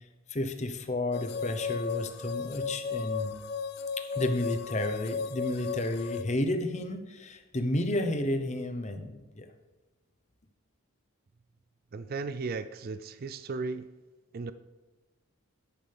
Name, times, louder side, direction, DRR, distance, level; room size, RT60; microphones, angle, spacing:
voice 1, 0.3-3.4 4.0-9.5, left 1 dB, 30° left, 7 dB, 0.8 m, -31 dB
sound 1, 1.1-6.2, left 6 dB, 45° left, 0.4 m, -35 dB
voice 2, 11.9-13.9 14.3-14.5, right 4 dB, 40° right, 12 dB, 0.4 m, -35 dB
10.0 x 9.8 x 3.5 m, 1.2 s
head